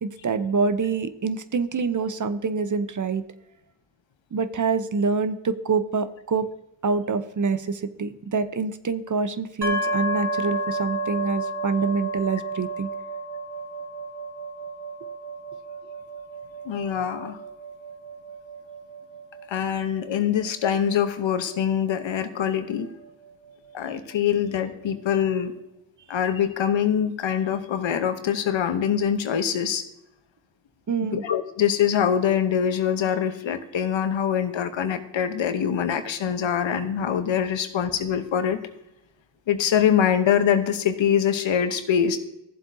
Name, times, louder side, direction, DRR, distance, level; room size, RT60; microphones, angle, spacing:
voice 1, 0.0-3.2 4.3-6.5 6.8-12.9 30.9-31.2, right 4 dB, 40° right, 12 dB, 0.7 m, -26 dB
sound 1, 9.6-23.3, right 1 dB, 60° right, 1.7 m, -33 dB
voice 2, 16.6-17.4 19.5-22.9 23.7-25.5 26.1-29.8 31.0-38.6 39.5-42.2, left 8 dB, 80° left, 9 dB, 1.0 m, -24 dB
15.0 x 7.5 x 2.7 m, 0.86 s
cardioid pair, 45°, 45 cm